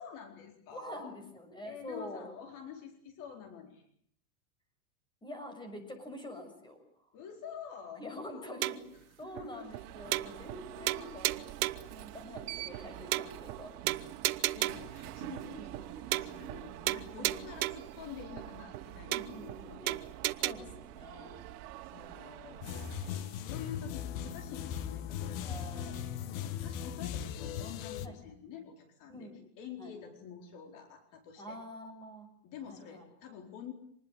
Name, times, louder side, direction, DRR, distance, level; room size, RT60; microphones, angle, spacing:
voice 1, 0.0-1.1 1.6-3.9 7.1-8.7 9.2-9.8 14.5-20.0 21.8-25.7 26.3-31.6 32.4-33.7, left 7 dB, 45° left, 5 dB, 4.4 m, -48 dB
voice 2, 0.7-2.3 5.2-6.8 8.0-8.8 9.2-11.4 11.9-13.7 15.5-15.7 17.2-17.4 19.1-19.9 20.4-21.4 25.4-26.0 26.3-27.0 28.0-28.1 29.1-29.4 29.8-29.9 31.4-32.3 32.7-33.0, equal, 10° left, 6 dB, 6.8 m, -46 dB
sound 1, 8.6-9.0 9.4-9.5 9.7-9.8 10.1-10.6 10.9-11.9 12.4-12.5 12.7-12.8 13.1-13.6 13.9-14.9 15.4-15.5 15.7-15.9 16.1-16.6 16.9-17.9 18.4-18.5 18.7-18.8 19.1-19.6 19.9-20.5, right 16 dB, 70° right, 1.3 m, -33 dB
Alarm, 9.5-23.5, right 13 dB, 50° right, 3.2 m, -47 dB
sound 2, 22.6-28.1, left 9 dB, 60° left, 2.2 m, -38 dB
26.0 x 20.5 x 9.3 m, 0.64 s
supercardioid pair, 135°, 45 cm